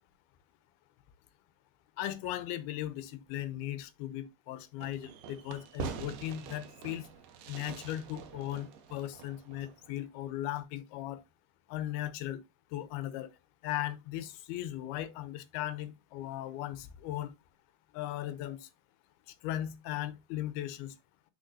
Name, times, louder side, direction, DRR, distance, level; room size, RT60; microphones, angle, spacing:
voice 1, 2.0-7.1 7.5-11.2 11.7-12.4 12.7-13.3 13.6-17.3 17.9-18.7 19.4-20.9, left 13 dB, 85° left, 2.7 m, -37 dB
Fireworks, 4.8-10.0, right 7 dB, 70° right, 2.2 m, -45 dB
6.5 x 6.0 x 2.7 m
omnidirectional pair, 4.4 m